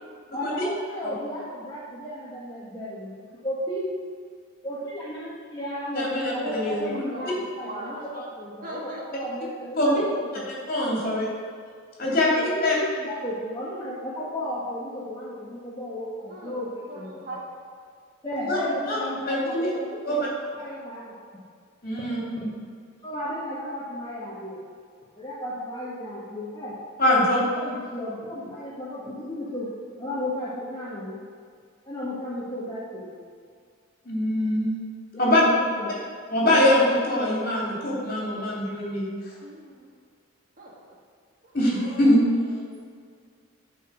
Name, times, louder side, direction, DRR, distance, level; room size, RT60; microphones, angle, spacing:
voice 1, 0.3-3.1 3.4-3.9 4.6-10.4 12.0-17.3 18.2-21.2 22.0-22.1 22.4-22.5 23.0-24.6 25.1-26.8 27.6-29.7 30.0-31.2 31.9-33.2 35.1-36.0, equal, 20° left, -8 dB, 1.4 m, -34 dB
voice 2, 5.9-6.9 9.8-9.9 10.7-11.3 12.0-12.3 12.6-12.7 18.5-18.6 18.9-19.0 19.3-19.7 20.1-20.2 21.8-22.5 27.0-27.4 34.0-34.8 35.2-35.4 36.3-39.1 41.5-42.2, left 1 dB, 45° left, -5 dB, 3.0 m, -23 dB
voice 3, 7.1-8.2 8.6-9.0 16.3-16.6 16.9-17.4 39.4-39.8 40.6-40.7 42.6-42.9, right 1 dB, 40° right, -4 dB, 2.0 m, -39 dB
12.0 x 4.8 x 6.3 m, 2.1 s
head